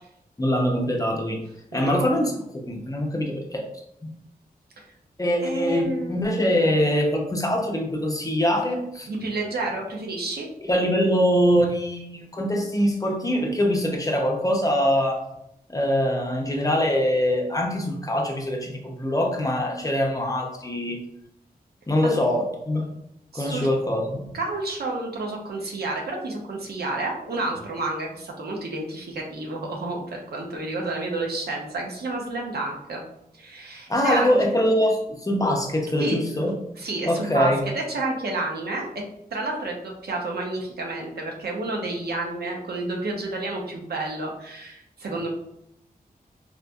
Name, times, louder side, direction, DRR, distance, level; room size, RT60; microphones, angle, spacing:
voice 1, 0.4-1.4 1.7-3.7 4.0-4.1 5.2-9.1 10.6-15.2 15.7-21.0 21.9-22.9 23.3-24.3 33.9-36.5 37.0-37.6, equal, 20° left, 1 dB, 0.6 m, -23 dB
voice 2, 1.7-2.0 4.8-4.9 5.4-6.1 9.1-10.5 22.0-22.2 23.3-23.7 24.3-33.0 33.3-34.4 36.0-36.2 36.8-38.9 39.3-45.3, right 2 dB, 85° right, 0 dB, 0.7 m, -30 dB
4.1 x 2.5 x 2.3 m, 0.79 s
wide cardioid pair, 95°, 16 cm